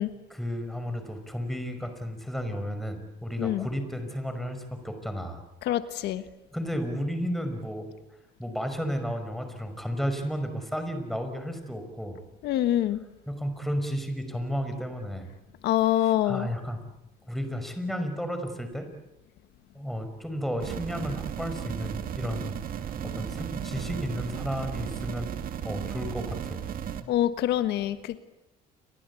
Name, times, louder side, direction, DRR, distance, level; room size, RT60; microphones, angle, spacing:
voice 1, 0.3-5.4 6.5-7.9 8.4-12.2 13.3-15.3 16.0-16.8 17.3-18.9 19.7-25.3 25.6-26.6, equal, ahead, 7 dB, 5.5 m, -33 dB
voice 2, 5.6-6.2 12.4-13.0 15.6-16.5 27.1-28.2, left 12 dB, 80° left, 11 dB, 1.4 m, -25 dB
sound 1, 20.6-27.0, right 9 dB, 60° right, 2.4 m, -35 dB
29.5 x 24.0 x 8.5 m, 0.96 s
cardioid pair, 110°, 17 cm